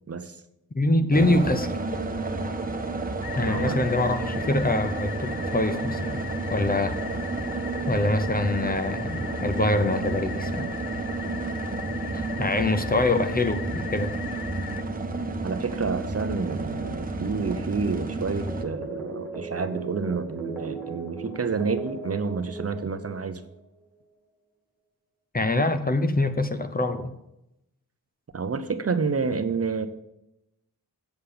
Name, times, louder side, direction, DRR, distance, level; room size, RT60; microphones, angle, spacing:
voice 1, 0.7-1.7 3.3-6.2 6.5-7.0 7.9-10.7 12.1-14.1 25.3-27.2, left 2 dB, 25° left, 9 dB, 0.7 m, -24 dB
sound 1, 1.1-18.6, right 2 dB, 25° right, 1.1 m, -31 dB
sound 2, 3.2-14.8, left 10 dB, 70° left, 0.5 m, -40 dB
voice 2, 3.4-3.8 15.4-23.4 28.3-29.9, right 5 dB, 40° right, 10 dB, 0.7 m, -29 dB
sound 3, 18.5-23.6, right 3 dB, 5° right, 2.2 m, -38 dB
8.3 x 7.7 x 6.8 m, 0.87 s
wide cardioid pair, 140°, 37 cm